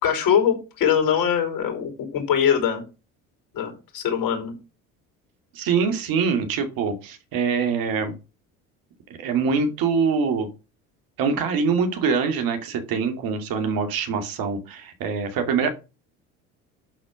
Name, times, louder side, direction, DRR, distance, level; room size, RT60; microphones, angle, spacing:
voice 1, 0.0-2.8 3.5-4.5, left 8 dB, 60° left, 4 dB, 5.6 m, -22 dB
voice 2, 5.5-8.1 9.1-10.5 11.2-15.7, right 5 dB, 60° right, 6 dB, 2.4 m, -24 dB
11.5 x 4.6 x 6.2 m, 0.31 s
hypercardioid pair, 75°, 39 cm